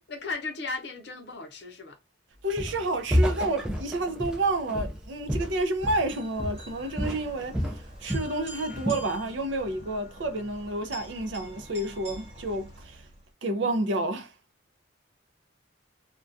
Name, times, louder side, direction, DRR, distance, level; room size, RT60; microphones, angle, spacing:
voice 1, 0.0-2.0, left 3 dB, 55° left, 0.7 m, -36 dB
voice 2, 2.4-13.1 13.4-14.3, right 2 dB, 70° right, 0.5 m, -30 dB
Walk footsteps, 2.6-2.9 3.1-6.1 6.4-6.7 7.0-8.4 8.7-9.1, equal, 5° right, 0.3 m, -29 dB
sound 1, 5.8-13.3, equal, 35° right, 1.1 m, -46 dB
2.3 x 2.2 x 2.5 m
head